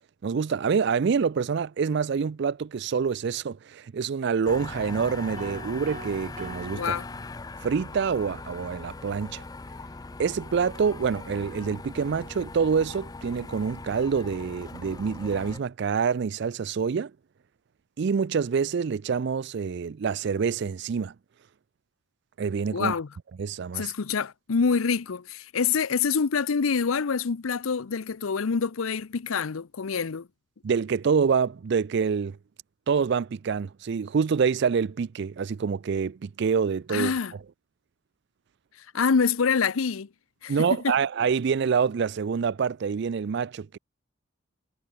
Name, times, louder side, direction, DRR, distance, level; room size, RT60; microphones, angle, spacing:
voice 1, 0.2-7.0 7.6-9.4 10.2-17.1 18.0-21.1 22.4-22.9 23.4-23.9 30.6-32.4 32.9-37.1 40.5-43.8, right 6 dB, 55° right, 0.4 m, -26 dB
sound 1, 4.4-15.6, left 3 dB, 20° left, 0.4 m, -40 dB
sound 2, 5.4-7.8, right 3 dB, 35° right, 2.5 m, -45 dB
voice 2, 6.7-7.1 22.7-23.1 23.7-30.3 36.9-37.3 38.9-40.1 40.4-40.9, left 5 dB, 80° left, 0.6 m, -26 dB
head